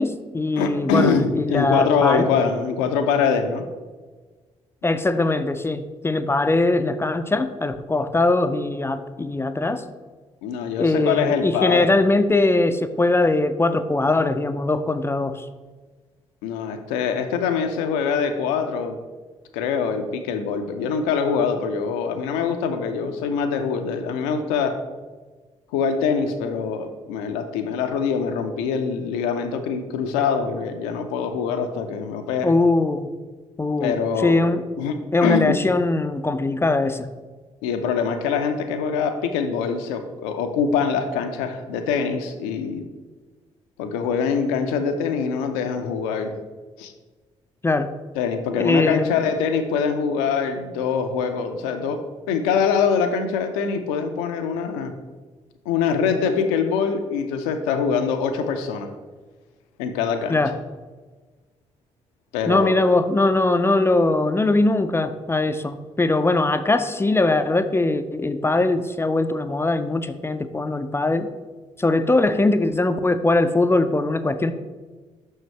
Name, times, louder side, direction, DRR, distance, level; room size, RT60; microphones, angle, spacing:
voice 1, 0.0-2.3 4.8-9.8 10.8-15.5 32.4-33.1 33.6-34.6 35.1-37.1 47.6-47.9 48.6-49.1 60.3-60.6 62.5-71.3 71.8-74.5, left 2 dB, 15° left, 10 dB, 0.4 m, -21 dB
voice 2, 0.6-3.6 10.4-11.9 16.4-19.0 19.5-24.8 25.7-32.5 33.8-34.9 35.2-35.6 37.6-42.8 43.8-46.4 46.8-46.9 48.2-54.9 55.7-58.9 59.8-60.4 62.3-62.7, left 6 dB, 70° left, 7 dB, 0.5 m, -24 dB
6.3 x 6.1 x 3.2 m, 1.3 s
figure-of-eight pair, 40°, 16 cm